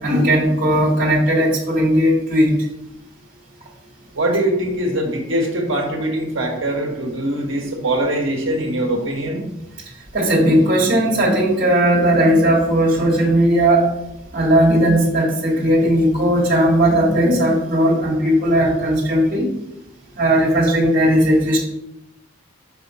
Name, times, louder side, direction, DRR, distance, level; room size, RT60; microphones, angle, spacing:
voice 1, 0.0-2.6 10.1-13.9 14.3-19.5 20.2-21.6, right 1 dB, 45° right, -4 dB, 2.6 m, -16 dB
voice 2, 4.1-9.4, right 1 dB, 75° right, 1 dB, 1.6 m, -22 dB
5.6 x 5.3 x 5.5 m, 0.88 s
head